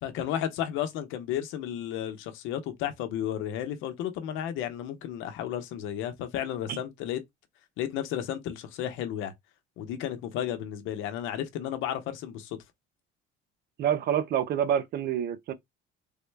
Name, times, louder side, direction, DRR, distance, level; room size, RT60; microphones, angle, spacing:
voice 1, 0.0-7.2 7.8-9.3 9.8-12.6, left 10 dB, 75° left, 0.8 m, -33 dB
voice 2, 13.8-15.5, right 9 dB, 50° right, 0.6 m, -27 dB
3.6 x 2.2 x 3.2 m
cardioid pair, 130°, 20 cm